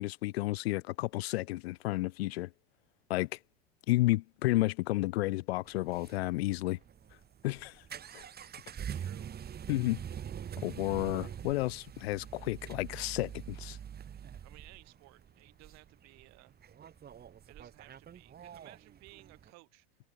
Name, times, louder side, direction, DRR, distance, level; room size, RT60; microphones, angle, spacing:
voice 1, 0.0-2.5 3.1-3.3 3.9-6.8 7.4-7.8 8.1-8.2 9.7-10.0 10.6-13.8, left 19 dB, 70° left, 0.6 m, -31 dB
sound 1, 5.7-19.5, right 8 dB, 30° right, 2.1 m, -45 dB
voice 2, 8.8-9.3 12.0-12.2 14.4-16.5 17.5-19.9, right 22 dB, 55° right, 7.8 m, -58 dB
hypercardioid pair, 85°, 32 cm